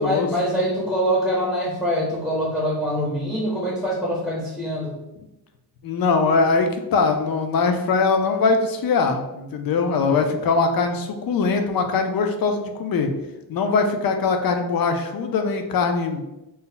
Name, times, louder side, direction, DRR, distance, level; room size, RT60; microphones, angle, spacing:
voice 1, 0.0-5.0, equal, ahead, -6 dB, 0.6 m, -24 dB
voice 2, 5.8-13.1 13.5-16.2, left 4 dB, 60° left, 6 dB, 0.5 m, -21 dB
2.7 x 2.0 x 3.7 m, 0.95 s
wide cardioid pair, 140°, 42 cm